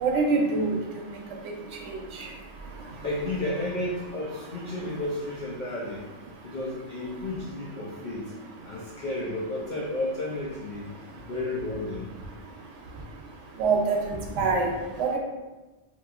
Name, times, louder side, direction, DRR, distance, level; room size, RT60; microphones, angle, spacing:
voice 1, 0.0-0.7 13.6-14.7 15.0-15.2, right 4 dB, 80° right, 1 dB, 0.9 m, -24 dB
voice 2, 3.0-6.0 6.4-8.3 8.6-10.9 11.3-12.1, left 1 dB, 60° left, -6 dB, 0.5 m, -32 dB
2.9 x 2.5 x 2.4 m, 1.2 s
omnidirectional pair, 1.2 m